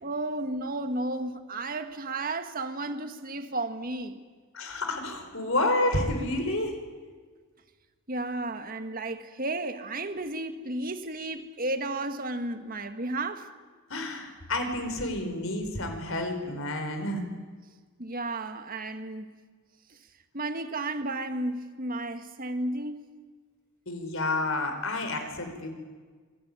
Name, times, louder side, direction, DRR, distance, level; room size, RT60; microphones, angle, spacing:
voice 1, 0.0-4.2 8.1-13.5 18.0-19.3 19.9-20.0 20.3-23.1, right 2 dB, 40° right, 1.9 m, -33 dB
voice 2, 4.5-6.8 13.9-17.2 23.9-25.7, left 2 dB, 65° left, 4.8 m, -29 dB
25.5 x 22.0 x 9.8 m
head